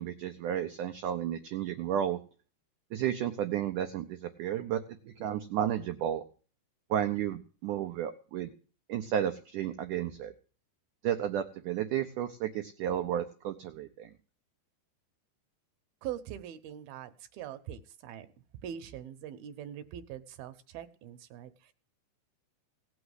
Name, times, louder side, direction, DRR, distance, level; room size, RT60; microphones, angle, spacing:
voice 1, 0.0-2.2 2.9-4.8 5.2-6.2 6.9-8.5 8.9-10.3 11.0-14.1, right 10 dB, 90° right, 7 dB, 1.7 m, -32 dB
voice 2, 16.0-18.3 18.6-21.7, right 10 dB, 75° right, 11 dB, 2.5 m, -42 dB
17.5 x 6.2 x 8.0 m, 0.39 s
omnidirectional pair, 4.7 m